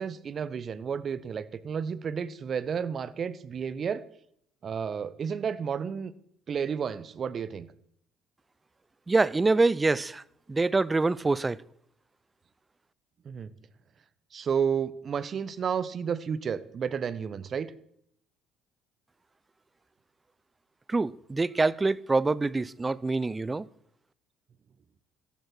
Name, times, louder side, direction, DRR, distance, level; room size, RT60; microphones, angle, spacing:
voice 1, 0.0-4.0 4.6-6.1 6.5-7.7 13.2-13.5 14.3-17.7, right 7 dB, 45° right, 1.2 m, -31 dB
voice 2, 9.1-10.2 10.5-11.6 20.9-23.7, right 3 dB, 20° right, 0.7 m, -25 dB
17.5 x 14.0 x 4.6 m
hypercardioid pair, 55°, 0 cm